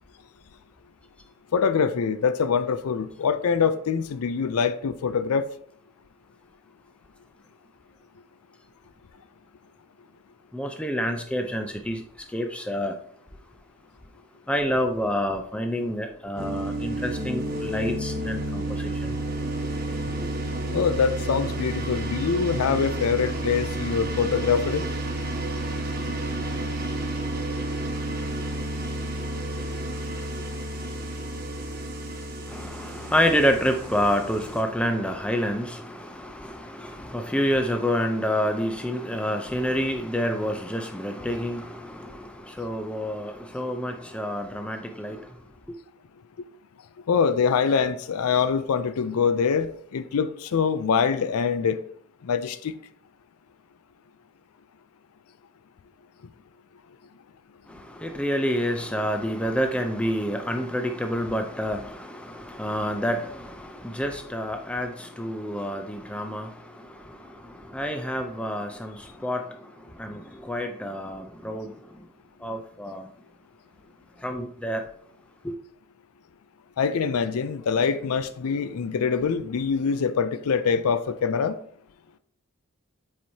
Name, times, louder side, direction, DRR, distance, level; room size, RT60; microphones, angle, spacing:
voice 1, 1.5-5.5 20.7-24.9 47.1-51.8 52.2-52.8 76.8-81.6, left 6 dB, 80° left, 0.4 m, -24 dB
voice 2, 10.5-13.0 14.5-19.2 20.1-20.3 32.5-45.8 57.7-72.1 72.4-73.1 74.2-74.9 75.4-75.5, equal, 5° left, 0.4 m, -28 dB
sound 1, 16.4-34.6, right 1 dB, 40° right, 1.1 m, -31 dB
7.3 x 4.7 x 2.7 m
head